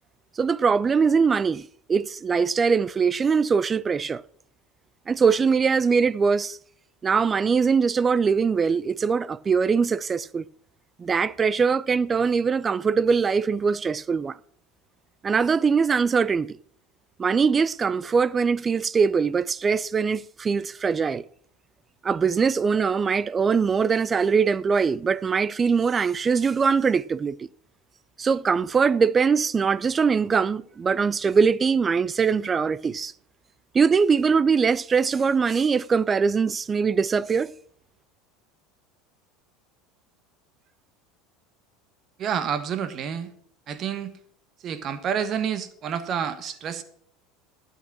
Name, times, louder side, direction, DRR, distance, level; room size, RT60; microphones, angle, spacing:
voice 1, 0.4-4.2 5.1-6.6 7.0-10.4 11.0-14.4 15.2-16.5 17.2-21.2 22.0-27.5 28.2-33.1 33.7-37.5, right 5 dB, 25° right, 0.4 m, -22 dB
voice 2, 42.2-43.3 43.7-44.2 44.6-46.8, right 8 dB, 45° right, 1.4 m, -29 dB
12.5 x 8.3 x 6.0 m
hypercardioid pair, 80°, 0 cm